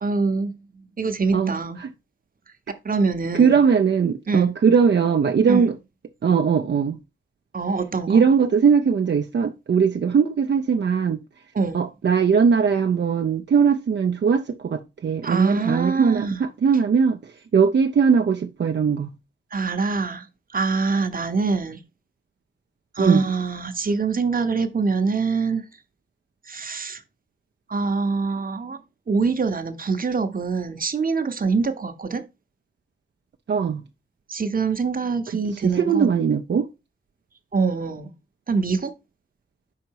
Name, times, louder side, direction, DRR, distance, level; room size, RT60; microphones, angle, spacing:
voice 1, 0.0-0.5 1.0-1.8 2.8-3.6 4.3-4.5 5.5-5.7 7.5-8.2 11.5-11.8 15.2-16.4 19.5-20.3 20.5-21.8 22.9-25.6 26.5-27.0 27.7-28.8 29.1-32.2 34.3-36.1 37.5-38.1 38.5-38.9, right 4 dB, 45° right, 0.8 m, -24 dB
voice 2, 1.3-1.9 3.3-5.8 6.2-7.0 8.1-11.2 11.7-19.1 23.0-23.2 33.5-33.8 35.5-36.7, right 6 dB, 60° right, 0.5 m, -20 dB
5.7 x 3.9 x 4.6 m
wide cardioid pair, 95°, 20 cm